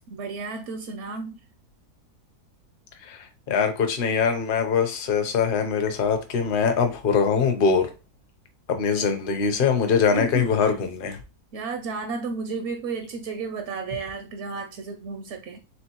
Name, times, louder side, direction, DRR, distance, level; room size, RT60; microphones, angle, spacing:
voice 1, 0.1-1.4 8.9-9.1 10.1-10.5 11.5-15.6, right 4 dB, 65° right, 0.7 m, -32 dB
voice 2, 3.1-7.9 8.7-11.2, left 6 dB, 45° left, 0.7 m, -23 dB
4.4 x 3.4 x 2.9 m
omnidirectional pair, 1.7 m